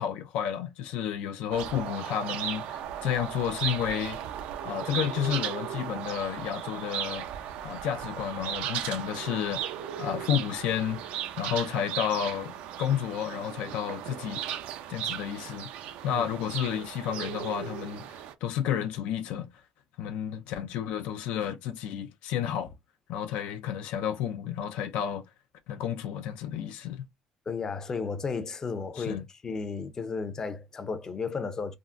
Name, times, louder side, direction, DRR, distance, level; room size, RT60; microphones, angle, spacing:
voice 1, 0.0-4.2 4.6-7.3 7.6-9.7 10.0-14.4 14.9-15.7 16.0-19.5 20.0-22.7 23.1-25.2 25.7-27.0 28.9-29.2, left 9 dB, 80° left, 0.5 m, -31 dB
sound 1, 1.5-18.3, right 10 dB, 80° right, 0.5 m, -36 dB
voice 2, 27.5-31.8, left 5 dB, 25° left, 0.5 m, -33 dB
3.6 x 2.0 x 2.5 m
cardioid pair, 130°, 2 cm